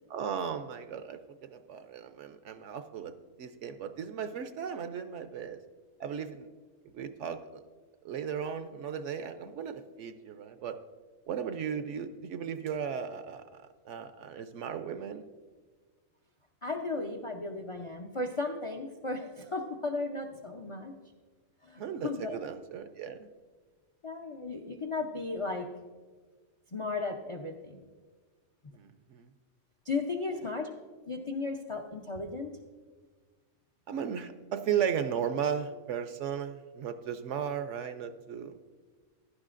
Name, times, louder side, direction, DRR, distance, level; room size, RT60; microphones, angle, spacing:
voice 1, 0.1-3.1 3.4-5.6 6.0-6.5 6.9-7.6 8.0-10.8 11.3-13.4 13.9-15.2 21.8-23.3 28.7-29.3 33.9-38.6, right 8 dB, 65° right, 10 dB, 0.8 m, -36 dB
voice 2, 16.6-20.9 21.6-22.4 24.0-25.7 26.7-27.8 29.9-30.7 31.1-32.5, left 3 dB, 55° left, 3 dB, 0.3 m, -35 dB
16.0 x 11.5 x 2.5 m, 1.4 s
omnidirectional pair, 1.5 m